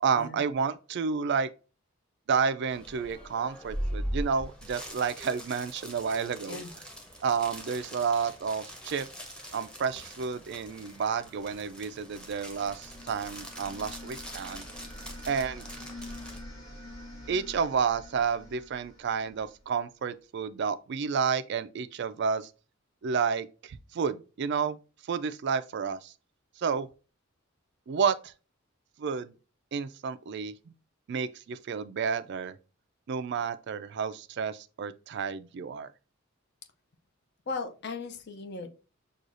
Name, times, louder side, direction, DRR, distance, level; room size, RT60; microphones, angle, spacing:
voice 1, 0.0-1.5 2.3-6.6 7.2-9.1 9.5-14.7 15.3-15.7 17.3-22.5 23.0-24.8 25.1-26.1 26.6-26.9 27.9-28.3 29.0-29.3 29.7-30.7 31.1-32.5 33.1-35.9, right 6 dB, 55° right, 0.4 m, -30 dB
sound 1, 2.7-16.4, equal, 5° left, 0.8 m, -41 dB
sound 2, 11.8-19.8, left 1 dB, 75° left, 1.4 m, -46 dB
voice 2, 37.5-38.7, left 4 dB, 55° left, 0.6 m, -37 dB
6.1 x 2.3 x 2.5 m
head